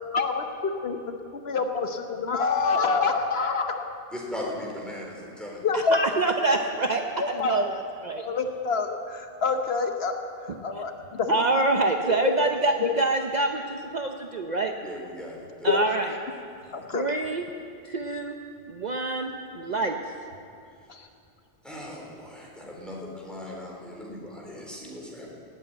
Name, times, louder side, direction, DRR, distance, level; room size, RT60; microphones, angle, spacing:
voice 1, 0.1-0.4 0.8-1.2 1.5-3.9 5.6-6.0 7.2-7.6 8.2-10.1 10.5-11.4 12.4-12.5 15.7-15.8 16.7-17.0 20.9-21.1, left 4 dB, 75° left, 5 dB, 1.2 m, -26 dB
voice 2, 4.1-5.7 7.5-7.6 14.8-15.7 16.6-16.8 21.6-25.3, left 1 dB, ahead, -3 dB, 3.9 m, -38 dB
voice 3, 5.7-8.2 10.5-10.6 11.3-14.7 15.6-16.2 16.9-17.5 17.8-18.4 18.7-20.0, right 2 dB, 45° right, 4 dB, 0.8 m, -26 dB
18.5 x 8.7 x 9.1 m, 2.4 s
omnidirectional pair, 1.1 m